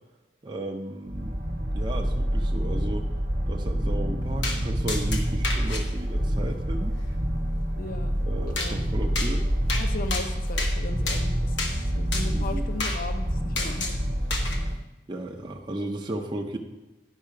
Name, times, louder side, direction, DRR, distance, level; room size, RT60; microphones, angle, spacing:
voice 1, 0.4-1.4 1.7-3.1 3.5-7.0 8.2-9.5 12.3-12.6 15.1-16.6, right 1 dB, 25° right, 2 dB, 0.6 m, -34 dB
sound 1, 1.1-14.7, equal, 50° right, 1.0 m, -27 dB
sound 2, 4.4-4.6 4.9-5.8 8.6-8.7 9.1-9.3 9.7-9.8 10.1-10.7 11.1-11.2 11.6-11.7 12.1-12.3 12.8-13.0 13.6-14.0 14.3-14.6, left 3 dB, 85° left, 1.2 m, -30 dB
voice 2, 7.8-8.1 8.6-8.8 9.7-13.9, left 3 dB, 50° left, 7 dB, 0.5 m, -37 dB
9.8 x 5.5 x 4.9 m, 1.1 s
head